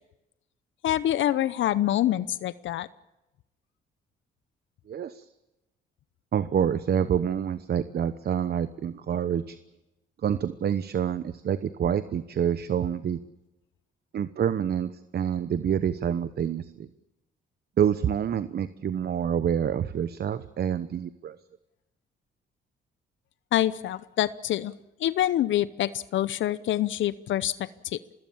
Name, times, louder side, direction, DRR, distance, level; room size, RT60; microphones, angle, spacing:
voice 1, 0.8-2.9 23.5-24.7 25.0-28.0, left 12 dB, 70° left, 15 dB, 0.8 m, -26 dB
voice 2, 4.9-5.2 6.3-9.6 10.2-13.2 14.1-16.9 17.8-21.3, right 8 dB, 55° right, 13 dB, 1.0 m, -27 dB
25.5 x 20.0 x 7.2 m, 0.97 s
cardioid pair, 90°, 20 cm